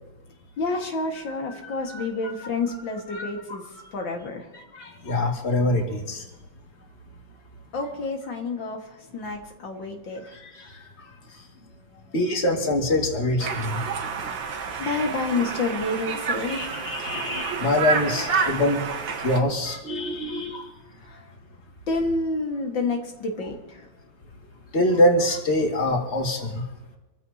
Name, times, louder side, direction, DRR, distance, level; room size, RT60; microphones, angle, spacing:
voice 1, 0.6-4.5 7.7-10.3 11.9-12.4 14.4-16.8 21.0-21.3 21.9-23.9, left 3 dB, 75° left, 1 dB, 2.4 m, -29 dB
voice 2, 4.7-6.2 10.4-10.7 12.1-13.8 16.5-18.8 19.2-20.7 24.7-26.6, left 1 dB, 35° left, 0 dB, 2.3 m, -24 dB
Conversation, 13.4-19.4, right 5 dB, 80° right, 2.1 m, -29 dB
26.5 x 15.0 x 2.8 m, 1.1 s
omnidirectional pair, 2.0 m